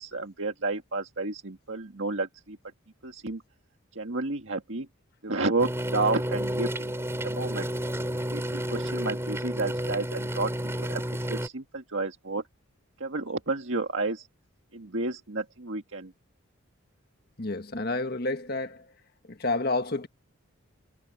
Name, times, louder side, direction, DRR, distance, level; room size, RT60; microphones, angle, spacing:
voice 1, 0.0-2.6 3.0-3.4 4.0-4.9 5.2-7.7 8.3-8.4 8.7-12.4 13.0-14.3 14.7-16.1, right 3 dB, 65° right, 1.7 m, -31 dB
sound 1, 5.6-11.5, equal, 10° right, 4.0 m, -31 dB
voice 2, 17.4-18.8 19.3-20.1, left 2 dB, 45° left, 1.6 m, -29 dB
head